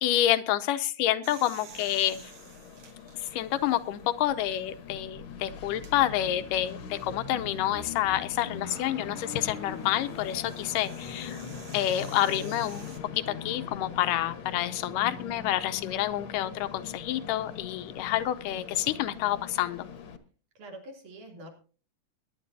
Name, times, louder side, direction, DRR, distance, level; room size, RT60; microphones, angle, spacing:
voice 1, 0.0-2.3 3.3-11.4 11.7-13.0 13.3-19.9, left 12 dB, 85° left, 11 dB, 2.4 m, -28 dB
sound 1, 1.2-4.1 4.7-4.8 5.7-5.9 8.1-13.0, right 6 dB, 50° right, 2.2 m, -51 dB
Train, 1.7-20.2, left 6 dB, 55° left, 1.5 m, -42 dB
Guitar, 8.6-18.4, left 6 dB, 30° left, 1.5 m, -48 dB
voice 2, 20.6-21.5, right 1 dB, 70° right, 2 dB, 4.4 m, -45 dB
20.5 x 10.5 x 2.7 m, 0.37 s
omnidirectional pair, 3.7 m